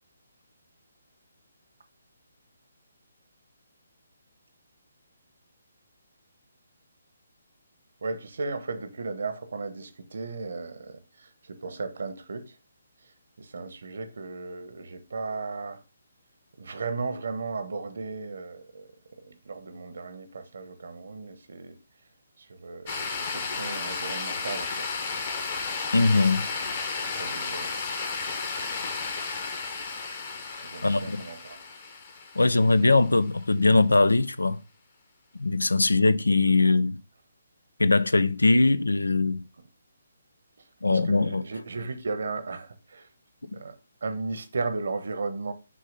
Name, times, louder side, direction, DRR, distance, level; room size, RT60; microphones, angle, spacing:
voice 1, 8.0-12.5 13.4-15.8 16.6-18.9 19.2-21.8 22.4-24.9 27.2-27.7 30.6-31.6 40.9-43.1 43.5-45.5, right 3 dB, 65° right, 1.0 m, -35 dB
sound 1, 22.9-33.1, left 4 dB, 45° left, 1.4 m, -33 dB
voice 2, 25.9-26.4 30.8-31.2 32.4-34.6 35.4-37.0 37.8-39.4 40.8-41.4 43.4-43.6, left 3 dB, 85° left, 0.4 m, -21 dB
6.2 x 2.8 x 5.3 m
figure-of-eight pair, 140°, 0 cm